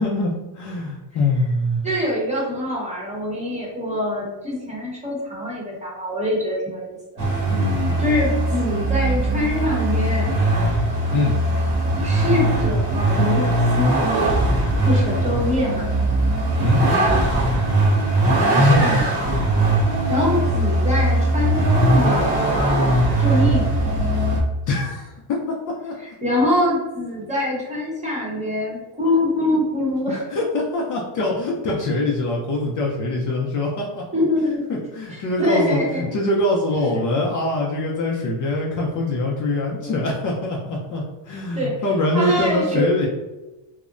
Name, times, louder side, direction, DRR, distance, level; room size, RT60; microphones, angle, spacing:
voice 1, 0.0-1.9 7.5-7.8 11.1-11.4 16.6-16.8 18.6-18.9 24.7-25.9 30.1-34.0 34.7-43.1, left 1 dB, 40° left, -3 dB, 0.5 m, -23 dB
voice 2, 1.8-7.0 8.0-10.3 12.0-13.5 13.8-14.3 14.8-15.9 19.9-22.4 23.2-23.7 26.0-30.2 34.1-34.7 35.1-36.1 39.8-40.1 41.3-41.7 42.1-42.9, left 1 dB, 15° right, -4 dB, 0.8 m, -24 dB
Vehicle, 7.2-24.4, right 1 dB, 55° right, 0.9 m, -20 dB
2.7 x 2.1 x 2.4 m, 1.1 s
cardioid pair, 110°, 46 cm